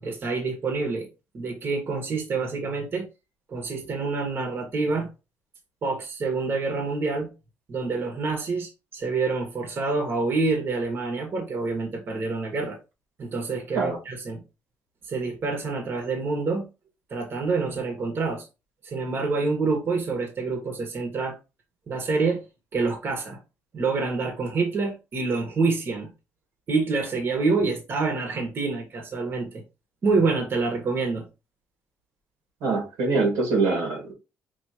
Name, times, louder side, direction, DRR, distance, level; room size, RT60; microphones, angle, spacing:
voice 1, 0.0-1.1 1.3-3.0 3.5-5.1 5.8-7.3 7.7-12.8 13.2-14.4 15.1-16.7 17.1-18.5 18.8-21.4 21.9-22.4 22.7-23.4 23.7-26.1 26.7-29.6 30.0-31.2, right 4 dB, 45° right, 1.3 m, -27 dB
voice 2, 32.6-34.1, right 3 dB, 85° right, 1.7 m, -24 dB
4.7 x 2.8 x 2.8 m
cardioid pair, 90°, 5 cm